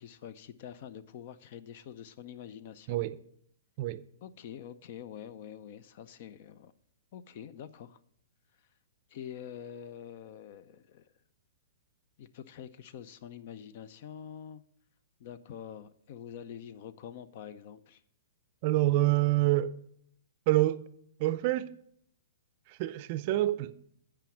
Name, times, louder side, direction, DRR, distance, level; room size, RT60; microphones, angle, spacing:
voice 1, 0.0-3.0 4.2-6.7 7.1-8.0 9.1-11.1 12.2-14.6 15.2-18.0, left 9 dB, 50° left, 0.5 m, -46 dB
voice 2, 18.6-19.7 20.5-20.8 21.2-21.7 22.7-23.7, right 16 dB, 45° right, 0.5 m, -27 dB
8.9 x 5.0 x 7.0 m
hypercardioid pair, 135°, 0 cm